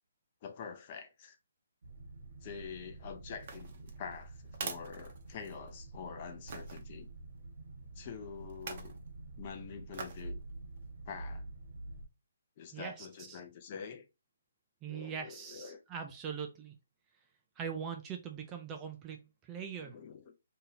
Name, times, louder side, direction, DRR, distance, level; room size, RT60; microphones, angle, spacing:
voice 1, 0.4-1.4 2.4-7.1 8.0-9.0 9.4-10.4 11.1-11.5 12.6-14.1 14.9-15.8 19.8-20.3, left 6 dB, 30° left, 0.6 m, -46 dB
sound 1, 1.8-12.1, right 2 dB, 70° right, 0.7 m, -48 dB
sound 2, 3.3-5.8 6.5-6.8 8.5-9.0 9.9-10.3 10.8-10.9, right 5 dB, 40° right, 0.7 m, -44 dB
voice 2, 12.7-13.4 14.8-16.7 17.6-20.0, right 7 dB, 15° right, 0.3 m, -42 dB
2.8 x 2.7 x 3.9 m
hypercardioid pair, 170°, 0 cm